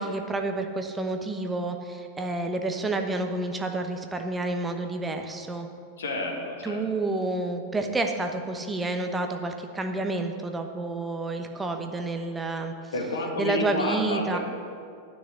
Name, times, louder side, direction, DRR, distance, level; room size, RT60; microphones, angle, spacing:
voice 1, 0.0-5.7 6.6-12.7 13.4-14.4, right 2 dB, 10° right, 5 dB, 1.0 m, -29 dB
voice 2, 6.0-6.8 12.9-14.4, left 1 dB, 65° left, 0 dB, 2.0 m, -30 dB
9.9 x 6.5 x 8.4 m, 2.3 s
figure-of-eight pair, 90°, 0 cm